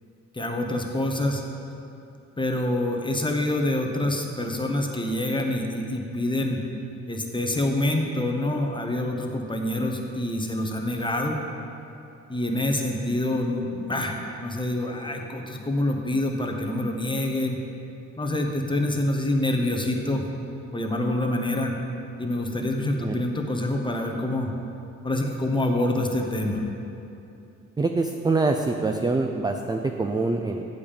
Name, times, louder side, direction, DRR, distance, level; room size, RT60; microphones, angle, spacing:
voice 1, 0.3-1.4 2.4-6.6 7.1-11.4 12.3-17.6 18.2-20.3 20.7-21.7 22.2-24.5 25.0-26.6, left 1 dB, 15° left, 2 dB, 1.1 m, -26 dB
voice 2, 27.8-30.6, right 3 dB, 15° right, 4 dB, 0.4 m, -25 dB
8.3 x 5.2 x 7.2 m, 2.7 s
cardioid pair, 90°, 30 cm